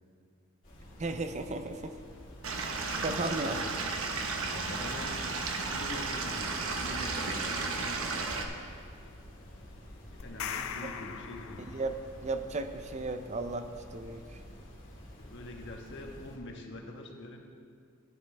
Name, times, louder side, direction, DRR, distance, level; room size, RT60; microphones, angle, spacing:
sound 1, 0.6-16.4, equal, 40° left, 2.4 m, -50 dB
voice 1, 1.0-1.9 3.0-3.6 11.7-12.0 12.2-14.2, right 3 dB, 35° right, 8 dB, 0.5 m, -34 dB
Stream / Liquid, 2.4-8.4, right 3 dB, 85° right, 1.0 m, -34 dB
voice 2, 3.0-5.2 5.5-7.9 10.1-11.8 15.2-17.4, left 1 dB, 60° left, 1 dB, 1.3 m, -45 dB
sound 2, 10.2-12.2, left 7 dB, 90° left, 0.6 m, -40 dB
15.0 x 10.5 x 3.4 m, 2.2 s
head